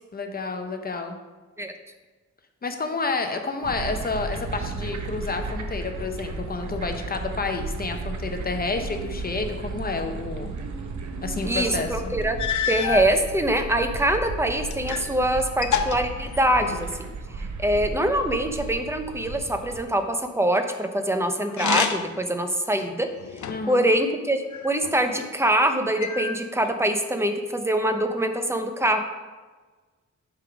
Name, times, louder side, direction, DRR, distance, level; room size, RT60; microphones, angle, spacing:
voice 1, 0.1-1.2 2.6-10.5 11.2-12.1 23.5-23.9, left 3 dB, 30° left, 5 dB, 0.7 m, -30 dB
sound 1, 3.6-19.8, right 3 dB, 75° right, 0.8 m, -34 dB
voice 2, 11.5-12.4 12.7-17.1 17.6-23.1 23.7-29.0, right 1 dB, 10° right, 6 dB, 0.5 m, -24 dB
sound 2, 12.4-13.1 13.9-15.1 15.4-16.9 21.5-22.2 22.8-23.8 24.5-25.3 26.0-26.8, left 8 dB, 75° left, 0.6 m, -29 dB
8.1 x 3.6 x 5.9 m, 1.3 s
wide cardioid pair, 170°, 30 cm